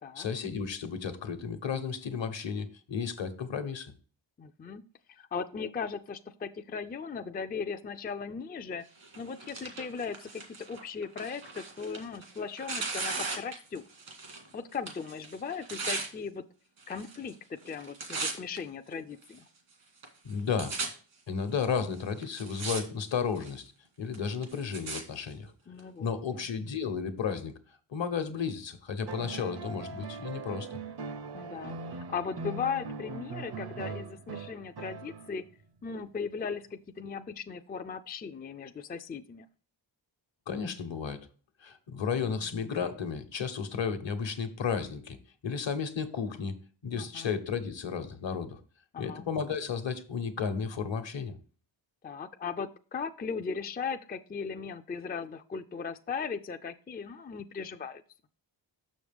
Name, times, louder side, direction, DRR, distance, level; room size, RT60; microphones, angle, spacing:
voice 1, 0.1-3.9 20.2-20.8 21.3-23.7 24.0-25.5 26.0-27.5 27.9-30.7 40.5-41.3 41.6-45.2 45.4-46.6 46.8-48.6 49.0-51.4, left 6 dB, 70° left, 9 dB, 1.1 m, -33 dB
voice 2, 4.4-4.8 5.1-8.8 9.2-10.4 10.7-13.8 14.5-16.4 16.9-19.4 25.7-26.1 29.2-29.6 31.3-35.4 35.8-39.5 47.0-47.4 48.9-49.3 52.0-58.0, left 5 dB, 20° left, 8 dB, 0.4 m, -38 dB
Tearing, 9.0-14.5 14.7-16.1 16.8-17.3 17.6-18.6 19.2-19.3 20.0-20.1 20.3-20.9 21.6-21.7 22.2-22.8 23.1-23.6 24.1-25.0 25.8-25.9, right 3 dB, 85° right, 2.0 m, -37 dB
sound 1, 29.1-35.5 37.0-37.1, right 4 dB, 55° right, 0.7 m, -40 dB
6.5 x 6.3 x 3.5 m, 0.40 s
wide cardioid pair, 105°, 47 cm